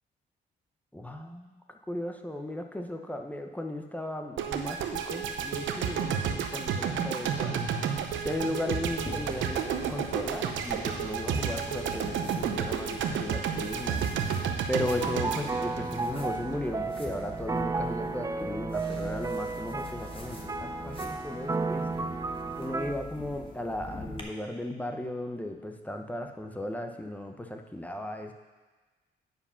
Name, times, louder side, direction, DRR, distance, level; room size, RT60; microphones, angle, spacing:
voice 1, 0.9-1.6 1.9-14.0 14.7-22.1 22.6-28.3, left 1 dB, 10° left, 4 dB, 0.8 m, -36 dB
sound 1, 4.4-16.6, right 7 dB, 75° right, 0.8 m, -31 dB
sound 2, 8.9-24.2, left 2 dB, 25° left, 1.3 m, -44 dB
sound 3, 15.0-22.9, right 3 dB, 15° right, 0.4 m, -33 dB
9.4 x 4.9 x 5.7 m, 1.3 s
cardioid pair, 90°, 20 cm